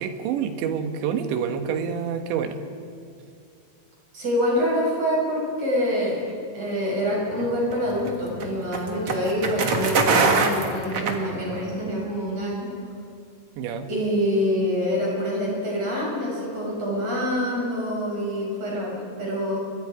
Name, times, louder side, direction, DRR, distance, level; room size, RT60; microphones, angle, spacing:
voice 1, 0.0-2.6 13.6-13.9, right 7 dB, 80° right, 6 dB, 3.6 m, -27 dB
voice 2, 4.1-6.2 6.5-12.7 13.9-19.6, equal, 35° right, -3 dB, 7.6 m, -26 dB
sound 1, 7.3-11.8, right 4 dB, 50° right, 1.7 m, -24 dB
29.5 x 23.5 x 5.0 m, 2.3 s
omnidirectional pair, 5.1 m